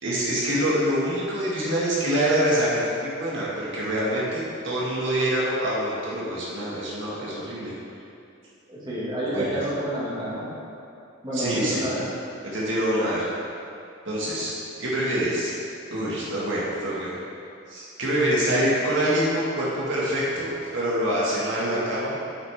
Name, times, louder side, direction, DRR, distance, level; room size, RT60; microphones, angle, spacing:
voice 1, 0.0-7.7 9.3-9.5 11.3-11.8 12.4-13.2 14.0-14.5 14.8-15.5 15.9-17.1 17.7-22.2, right 1 dB, 65° right, -7 dB, 1.9 m, -25 dB
voice 2, 8.7-10.4 11.2-12.0, right 1 dB, 20° right, -9 dB, 2.1 m, -29 dB
9.0 x 8.0 x 3.6 m, 2.6 s
head